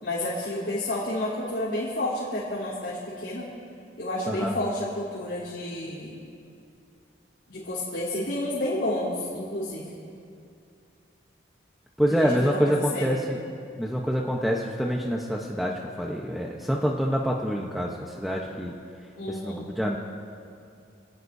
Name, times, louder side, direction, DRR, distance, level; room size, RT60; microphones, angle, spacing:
voice 1, 0.0-3.5 4.0-6.2 7.5-10.0 12.1-13.3 19.2-19.7, left 1 dB, 75° left, -8 dB, 3.6 m, -30 dB
voice 2, 12.0-13.4 13.8-18.7 19.3-20.0, equal, ahead, -2 dB, 0.9 m, -26 dB
27.0 x 18.0 x 2.7 m, 2.5 s
head